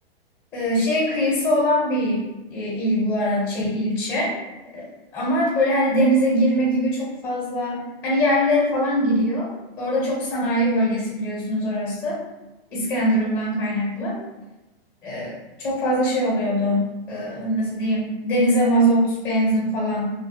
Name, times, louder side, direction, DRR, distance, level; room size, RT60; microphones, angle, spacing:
voice 1, 0.5-2.2 2.5-4.3 4.7-4.9 5.1-9.5 9.8-12.2 12.7-14.2 15.0-20.1, equal, 15° left, -5 dB, 0.6 m, -22 dB
2.4 x 2.2 x 2.5 m, 1.1 s
hypercardioid pair, 135°, 31 cm